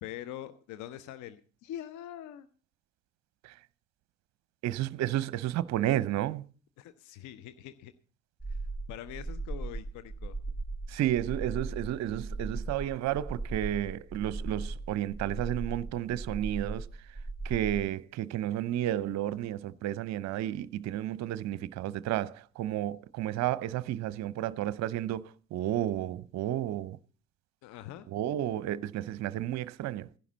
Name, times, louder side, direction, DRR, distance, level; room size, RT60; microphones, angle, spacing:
voice 1, 0.0-2.5 6.8-7.9 8.5-8.6 8.9-10.4 27.6-28.1, left 12 dB, 55° left, 0.9 m, -43 dB
voice 2, 4.6-6.5 10.9-16.9 17.4-27.0 28.1-30.1, right 13 dB, 50° right, 0.7 m, -32 dB
sound 1, 8.4-17.8, right 3 dB, 5° left, 1.6 m, -38 dB
16.0 x 11.0 x 4.0 m
figure-of-eight pair, 50°, 35 cm